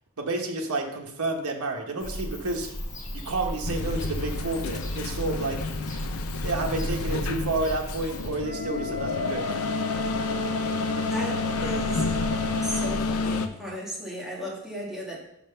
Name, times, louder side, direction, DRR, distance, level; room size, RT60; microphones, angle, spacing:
voice 1, 0.2-2.7 3.1-5.6 6.4-9.5, right 2 dB, 90° right, 2 dB, 1.1 m, -30 dB
Bird / Cricket, 2.0-8.3, left 1 dB, 35° left, 1.6 m, -39 dB
sound 1, 3.7-13.5, left 3 dB, 80° left, 0.6 m, -29 dB
Wind instrument woodwind instrument, 8.4-13.0, equal, 45° right, 1.5 m, -36 dB
voice 2, 11.1-12.1 12.6-15.2, equal, ahead, -5 dB, 2.0 m, -35 dB
6.3 x 5.9 x 5.6 m, 0.81 s
head